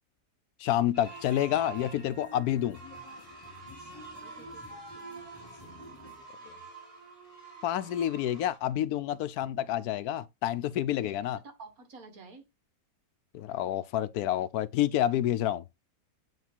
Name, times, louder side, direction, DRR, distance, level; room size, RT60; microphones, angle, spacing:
voice 1, 0.6-2.8 6.5-6.6 7.6-11.4 13.3-15.6, left 12 dB, 85° left, 1.1 m, -29 dB
sound 1, 0.9-8.6, right 4 dB, 40° right, 4.2 m, -48 dB
sound 2, 1.0-6.3, left 1 dB, 25° left, 0.5 m, -50 dB
voice 2, 3.9-6.2 10.9-11.1 11.4-12.4, right 3 dB, 70° right, 1.9 m, -52 dB
9.3 x 3.2 x 4.4 m
omnidirectional pair, 1.6 m